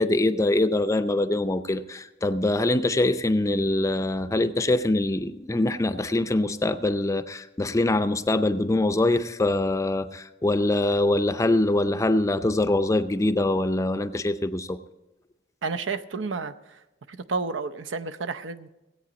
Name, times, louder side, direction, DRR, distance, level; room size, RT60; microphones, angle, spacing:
voice 1, 0.0-14.8, left 2 dB, 15° left, 0.4 m, -24 dB
voice 2, 15.6-16.8 17.1-18.7, right 4 dB, 90° right, 0.6 m, -31 dB
17.0 x 8.5 x 5.1 m
head